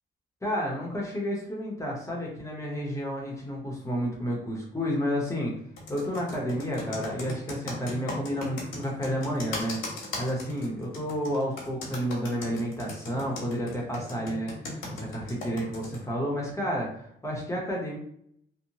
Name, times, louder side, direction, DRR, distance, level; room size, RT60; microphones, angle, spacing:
voice 1, 0.4-5.5 5.9-9.8 10.2-18.0, equal, 15° left, -3 dB, 0.8 m, -31 dB
Computer keyboard, 5.8-16.0, left 2 dB, 85° left, 0.9 m, -37 dB
2.8 x 2.0 x 2.7 m, 0.69 s
cardioid pair, 90°, 20 cm